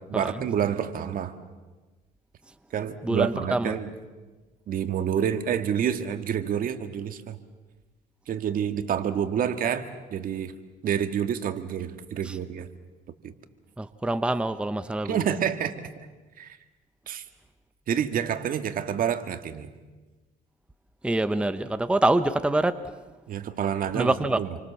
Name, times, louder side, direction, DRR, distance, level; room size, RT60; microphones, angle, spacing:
voice 1, 0.0-1.4 2.7-3.9 4.7-7.4 8.3-10.5 10.8-12.7 13.2-13.3 15.1-16.1 16.4-16.6 17.1-17.2 17.9-19.7 23.3-24.6, right 8 dB, 55° right, 9 dB, 1.9 m, -28 dB
voice 2, 3.0-3.7 12.3-12.4 13.8-15.2 21.0-22.8 23.9-24.4, right 2 dB, 5° right, 10 dB, 0.9 m, -25 dB
28.0 x 25.0 x 7.3 m, 1.2 s
cardioid pair, 110°, 17 cm